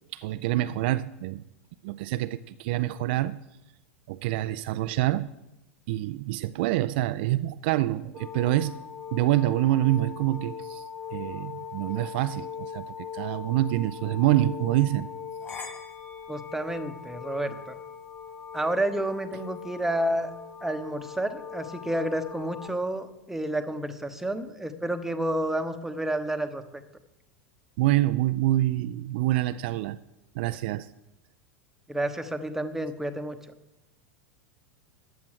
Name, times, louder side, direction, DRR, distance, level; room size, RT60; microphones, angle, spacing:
voice 1, 0.1-1.4 1.8-3.4 4.1-5.3 5.9-8.8 9.1-10.8 11.1-15.1 27.8-30.0 30.4-30.9, right 15 dB, 50° right, 12 dB, 0.3 m, -26 dB
sound 1, 8.1-22.7, left 6 dB, 25° left, 2.6 m, -40 dB
voice 2, 16.3-17.8 18.5-20.3 20.6-26.8 31.9-33.4, right 1 dB, 5° right, 8 dB, 0.9 m, -30 dB
14.0 x 9.2 x 4.8 m, 0.93 s
figure-of-eight pair, 85°, 7 cm